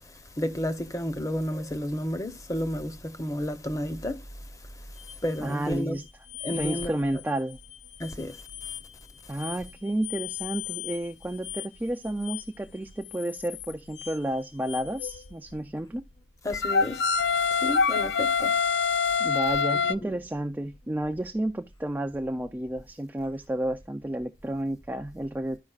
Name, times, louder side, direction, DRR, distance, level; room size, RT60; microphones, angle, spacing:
voice 1, 0.4-4.2 5.2-6.0 6.4-6.9 8.0-8.4 16.4-17.1 17.5-18.5 19.7-20.2, equal, 20° left, 0.7 m, -31 dB
sound 1, 5.1-5.2 6.3-6.9 7.2-7.3 7.7-7.8 8.0-8.8 9.4-9.6 10.0-11.0 11.4-11.7 12.2-12.4 12.9-14.1 14.7-15.5 16.5-19.9, left 5 dB, 75° left, 0.5 m, -27 dB
voice 2, 5.4-6.0 6.5-7.6 9.3-16.0 19.2-25.6, right 1 dB, 10° right, 0.3 m, -31 dB
13.5 x 5.2 x 2.3 m
head